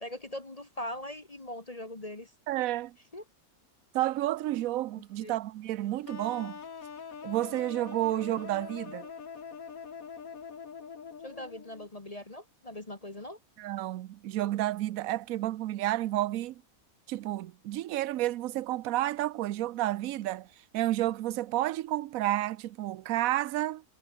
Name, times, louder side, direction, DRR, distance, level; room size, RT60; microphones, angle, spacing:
voice 1, 0.0-2.3 3.1-3.2 5.2-5.4 11.2-13.4, left 1 dB, 25° left, 1.7 m, -41 dB
voice 2, 2.5-3.0 3.9-6.6 7.2-9.1 13.6-16.6 17.1-20.5 20.7-23.8, right 14 dB, 70° right, 1.0 m, -31 dB
sound 1, 6.1-11.9, left 6 dB, 70° left, 2.1 m, -44 dB
omnidirectional pair, 1.5 m